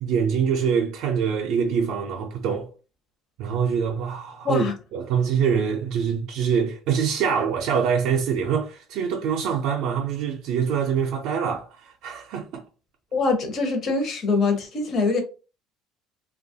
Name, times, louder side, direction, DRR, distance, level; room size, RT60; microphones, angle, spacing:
voice 1, 0.0-2.7 3.4-4.7 4.9-12.6, right 7 dB, 65° right, 0.4 m, -24 dB
voice 2, 13.1-15.2, left 3 dB, 35° left, 0.6 m, -23 dB
2.9 x 2.2 x 2.6 m
cardioid pair, 165°, 0 cm